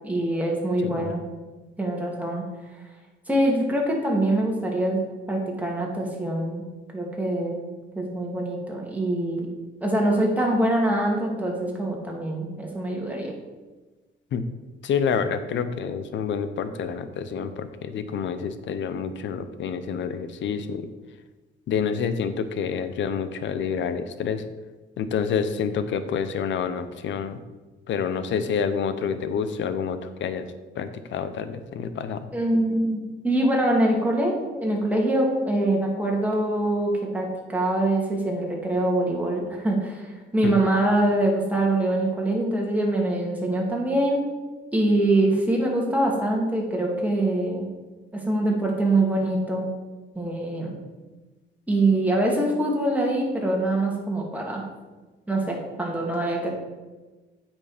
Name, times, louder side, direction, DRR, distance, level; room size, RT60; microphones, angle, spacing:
voice 1, 0.0-1.2 1.8-2.5 3.3-5.0 5.3-6.7 6.9-7.6 7.9-9.5 9.8-13.3 32.3-44.2 44.7-47.7 48.1-49.7 50.1-50.8 51.7-54.6 55.3-56.5, right 1 dB, 5° right, -2 dB, 2.6 m, -24 dB
voice 2, 0.8-1.1 14.3-14.4 14.8-20.9 21.7-24.4 25.0-27.4 27.9-30.5 30.7-32.2 40.4-40.5, left 6 dB, 70° left, 11 dB, 0.8 m, -28 dB
8.6 x 6.1 x 5.1 m, 1.2 s
cardioid pair, 90°, 20 cm